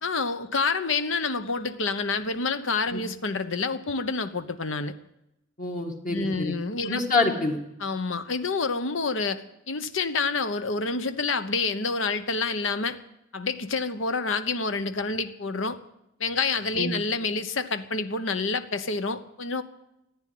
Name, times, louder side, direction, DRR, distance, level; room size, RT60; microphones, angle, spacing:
voice 1, 0.0-4.9 6.1-7.0 7.8-13.0 13.3-15.8 16.2-19.6, left 4 dB, 75° left, 10 dB, 1.0 m, -28 dB
voice 2, 5.6-6.5 6.8-7.6 16.8-16.9, left 3 dB, 45° left, 1 dB, 2.1 m, -26 dB
15.0 x 9.9 x 9.3 m, 0.84 s
head